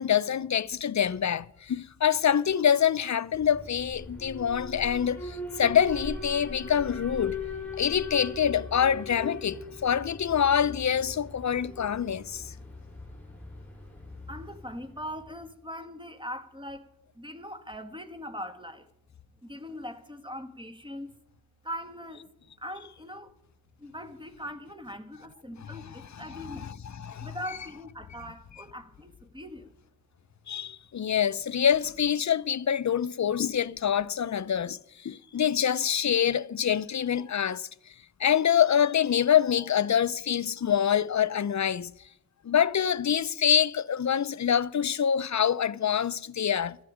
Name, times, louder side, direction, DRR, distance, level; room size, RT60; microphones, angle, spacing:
voice 1, 0.0-7.4 7.8-12.5 25.6-25.7 26.3-27.3 30.5-37.7 38.2-41.9 42.4-46.8, left 8 dB, 55° left, 0.6 m, -26 dB
Alarm, 3.3-15.3, left 2 dB, 5° left, 5.3 m, -40 dB
voice 2, 14.3-16.9 17.2-18.9 19.4-21.1 21.6-22.3 22.6-23.3 23.8-29.7, equal, 15° right, 1.8 m, -41 dB
17.5 x 13.0 x 5.0 m
cardioid pair, 60°, 35 cm